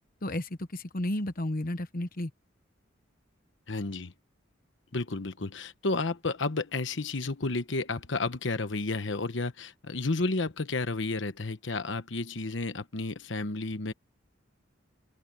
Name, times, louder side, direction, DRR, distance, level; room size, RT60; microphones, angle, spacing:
voice 1, 0.2-2.3, left 1 dB, 45° left, 1.1 m, -32 dB
voice 2, 3.7-4.1 4.9-13.9, left 3 dB, 65° left, 1.2 m, -31 dB
open air
head